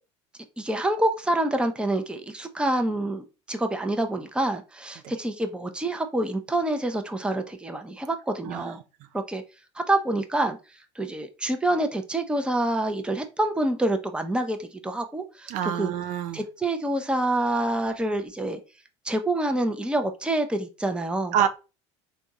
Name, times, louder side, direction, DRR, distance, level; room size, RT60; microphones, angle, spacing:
voice 1, 0.6-8.8 9.1-9.4 9.8-10.6 11.0-15.9 16.3-18.6 19.0-21.3, right 1 dB, 5° right, 0.6 m, -27 dB
voice 2, 15.5-16.4 21.3-21.5, right 9 dB, 60° right, 0.5 m, -26 dB
3.5 x 2.3 x 4.0 m
hypercardioid pair, 75°, 15 cm